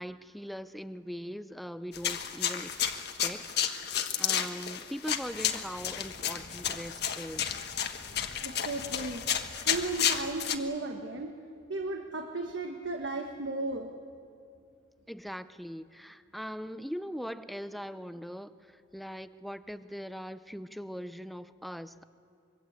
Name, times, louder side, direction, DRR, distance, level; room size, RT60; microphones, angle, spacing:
voice 1, 0.0-2.9 3.2-3.9 4.2-7.6 15.1-22.0, equal, ahead, 12 dB, 0.6 m, -41 dB
sound 1, 1.9-10.6, left 9 dB, 60° left, 1.4 m, -32 dB
voice 2, 8.4-9.2 9.7-11.3 11.7-13.9, right 2 dB, 75° right, 3 dB, 1.5 m, -35 dB
25.0 x 23.5 x 8.2 m, 2.4 s
head